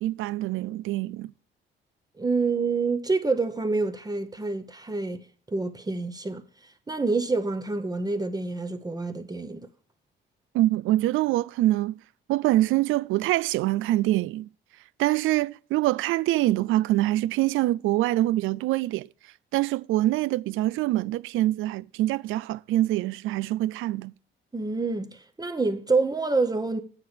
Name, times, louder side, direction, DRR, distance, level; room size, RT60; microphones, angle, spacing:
voice 1, 0.0-1.3 10.5-12.0 12.3-14.5 15.0-19.1 19.5-24.1, right 16 dB, 85° right, 0.4 m, -25 dB
voice 2, 2.2-5.2 5.5-6.4 6.9-9.7 24.5-26.8, right 3 dB, 20° right, 1.0 m, -27 dB
9.1 x 4.7 x 6.4 m
cardioid pair, 90°, 20 cm